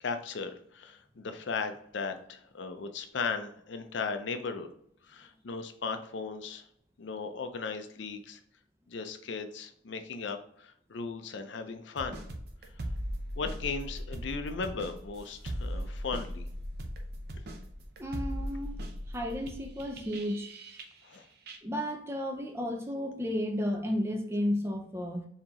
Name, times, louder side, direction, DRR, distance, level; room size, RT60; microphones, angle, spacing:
voice 1, 0.0-4.7 5.1-6.6 7.0-8.4 8.9-12.2 13.4-16.5 21.0-21.3, left 4 dB, 70° left, 7 dB, 0.5 m, -37 dB
sound 1, 12.0-21.2 21.5-21.6, equal, 55° right, 0.6 m, -39 dB
voice 2, 18.0-18.8 19.1-20.5 21.6-25.3, equal, 15° right, 4 dB, 0.5 m, -33 dB
4.4 x 2.8 x 3.7 m, 0.68 s
head